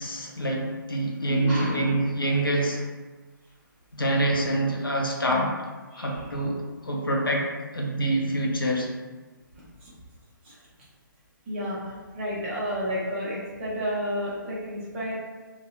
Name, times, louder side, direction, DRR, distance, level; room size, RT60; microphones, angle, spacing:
voice 1, 0.0-2.8 3.9-5.7 6.0-8.9, right 1 dB, 85° left, 0 dB, 0.5 m, -26 dB
voice 2, 1.5-1.9 5.9-6.4 9.5-9.9 10.4-10.6 11.5-15.2, equal, 35° right, -7 dB, 0.8 m, -32 dB
2.7 x 2.3 x 2.3 m, 1.3 s
figure-of-eight pair, 140°, 11 cm